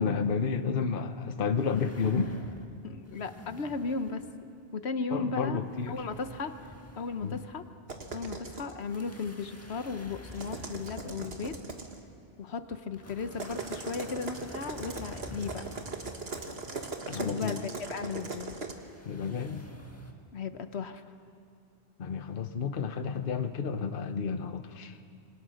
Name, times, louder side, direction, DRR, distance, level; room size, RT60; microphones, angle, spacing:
voice 1, 0.0-2.4 5.1-6.0 7.2-7.5 17.1-17.6 19.0-19.6 22.0-25.0, left 5 dB, 55° left, 8 dB, 1.1 m, -31 dB
sound 1, 1.5-2.8 3.0-4.3 5.4-7.7 8.1-8.2 8.8-12.0 12.7-17.1 18.5-20.1, left 1 dB, 15° left, 1.7 m, -49 dB
voice 2, 2.8-4.2 4.7-5.6 5.9-6.7 7.0-7.6 8.1-11.6 12.4-15.6 17.1-18.6 20.3-21.0, left 4 dB, 80° left, 9 dB, 1.3 m, -36 dB
sound 2, 7.9-8.7 10.2-12.0 13.3-18.7, right 3 dB, 70° right, 1.8 m, -39 dB
27.0 x 24.5 x 6.5 m, 2.4 s
omnidirectional pair, 1.1 m